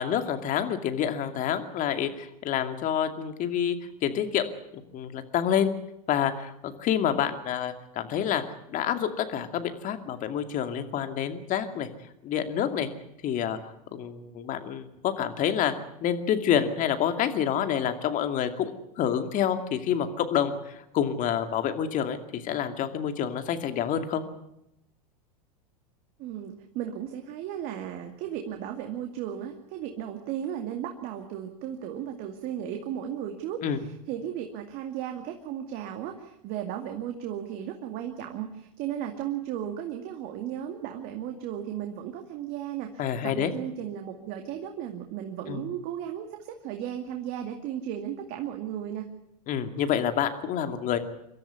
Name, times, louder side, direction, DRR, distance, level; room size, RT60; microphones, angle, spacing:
voice 1, 0.0-3.8 4.0-4.5 4.7-5.7 6.1-8.4 8.7-11.9 12.2-12.9 13.2-15.7 16.0-18.7 19.0-24.2 33.6-33.8 43.0-43.5 45.5-45.6 49.5-51.0, left 9 dB, 40° left, 8 dB, 2.5 m, -28 dB
voice 2, 26.2-49.1, right 10 dB, 50° right, 4 dB, 2.3 m, -35 dB
24.5 x 13.5 x 9.5 m, 0.84 s
hypercardioid pair, 105°, 20 cm